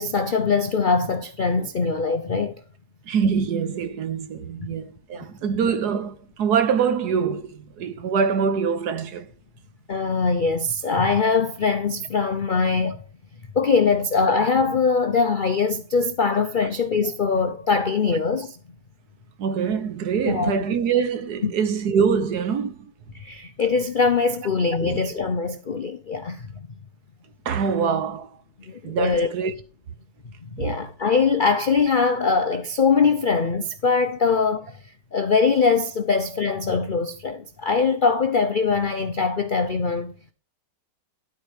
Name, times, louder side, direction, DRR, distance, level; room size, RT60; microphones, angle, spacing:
voice 1, 0.0-2.6 9.9-13.0 13.5-18.6 20.2-20.5 21.4-21.5 23.1-26.7 28.7-29.3 30.4-34.8 35.1-40.1, left 5 dB, 70° left, 0.4 m, -22 dB
voice 2, 3.1-9.3 19.4-22.9 24.8-25.0 27.4-28.3 28.8-29.5 30.6-30.8, right 6 dB, 65° right, 1.4 m, -24 dB
12.5 x 4.7 x 4.9 m
omnidirectional pair, 1.9 m